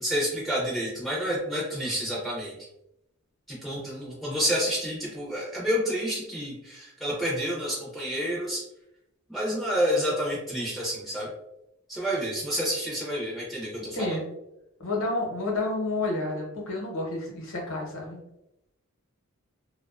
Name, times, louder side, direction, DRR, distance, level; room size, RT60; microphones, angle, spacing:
voice 1, 0.0-2.5 3.5-8.6 9.3-11.3 11.9-14.2, equal, ahead, -6 dB, 0.4 m, -29 dB
voice 2, 13.9-14.2 14.8-18.2, left 2 dB, 65° left, -1 dB, 0.8 m, -30 dB
2.5 x 2.2 x 2.3 m, 0.85 s
head